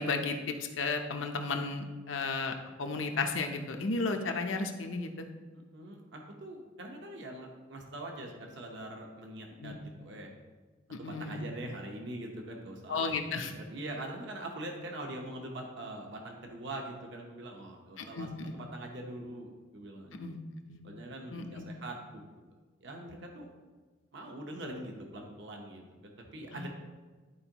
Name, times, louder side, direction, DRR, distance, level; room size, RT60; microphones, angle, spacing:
voice 1, 0.0-5.3 9.6-9.8 10.9-11.4 12.9-13.5 18.0-18.5 20.2-20.4 20.7-20.8 21.3-21.7 26.5-26.7, left 3 dB, 75° left, 5 dB, 0.8 m, -34 dB
voice 2, 5.5-10.3 11.0-13.1 13.4-18.3 18.5-20.2 20.8-22.2 22.8-23.5 24.1-26.7, right 1 dB, 65° right, 1 dB, 0.9 m, -43 dB
11.5 x 4.5 x 2.9 m, 1.3 s
head